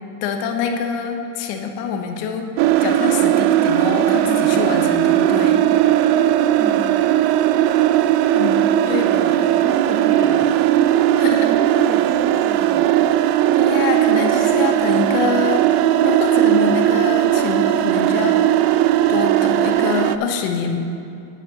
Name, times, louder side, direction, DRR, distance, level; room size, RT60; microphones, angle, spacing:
voice 1, 0.2-2.5 2.8-5.6 8.3-9.0 11.2-11.5 13.2-15.7 16.0-18.4 19.1-20.9, left 6 dB, 85° left, 4 dB, 1.1 m, -25 dB
sound 1, 2.6-20.2, right 12 dB, 55° right, 0.5 m, -17 dB
voice 2, 5.3-5.8 6.6-7.0 8.8-10.6 11.4-12.9, right 2 dB, 15° right, -3 dB, 1.0 m, -31 dB
11.0 x 11.0 x 2.9 m, 2.6 s
supercardioid pair, 120°, 46 cm